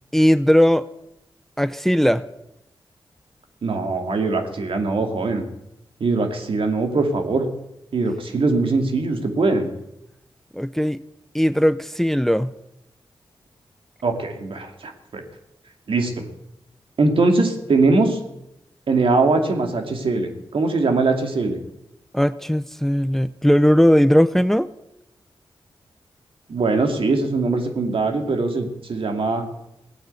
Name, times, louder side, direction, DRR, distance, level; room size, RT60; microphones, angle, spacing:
voice 1, 0.1-0.8 1.6-2.2 10.5-11.0 11.3-12.5 22.1-24.7, equal, 5° left, 15 dB, 0.6 m, -18 dB
voice 2, 3.6-5.5 6.0-7.5 7.9-9.7 14.0-15.2 15.9-16.3 17.0-18.2 18.9-21.6 26.5-29.4, right 3 dB, 70° right, 4 dB, 2.5 m, -21 dB
17.5 x 8.9 x 8.2 m, 0.86 s
cardioid pair, 50°, 9 cm